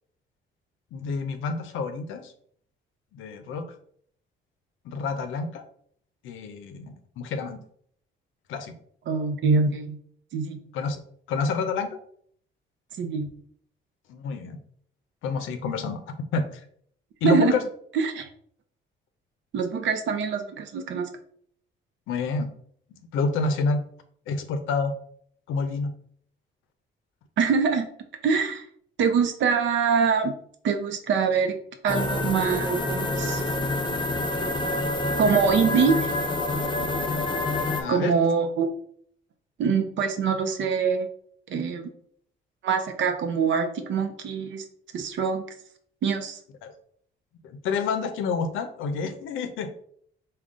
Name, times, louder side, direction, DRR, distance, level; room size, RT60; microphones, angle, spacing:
voice 1, 0.9-2.3 3.1-3.7 4.8-5.6 6.2-7.6 8.5-8.7 10.7-11.0 11.3-12.0 14.1-14.6 15.2-16.0 16.3-16.5 17.2-17.6 22.1-22.5 23.1-23.8 24.3-24.9 25.5-25.9 37.7-38.1 46.6-46.7 47.4-49.7, left 4 dB, 85° left, 9 dB, 0.5 m, -28 dB
voice 2, 9.1-10.0 10.3-10.6 13.0-13.3 17.2-17.6 17.9-18.3 19.5-21.1 27.4-27.9 28.2-28.6 29.0-30.3 30.6-31.6 31.8-33.4 35.2-36.1 37.9-38.7 39.6-41.1 41.5-41.8 42.6-44.6 44.9-45.4 46.0-46.4, right 5 dB, 70° right, 6 dB, 0.6 m, -24 dB
sound 1, 31.9-37.8, left 2 dB, 25° left, 0.6 m, -27 dB
3.6 x 2.2 x 3.7 m, 0.63 s
cardioid pair, 90°, 20 cm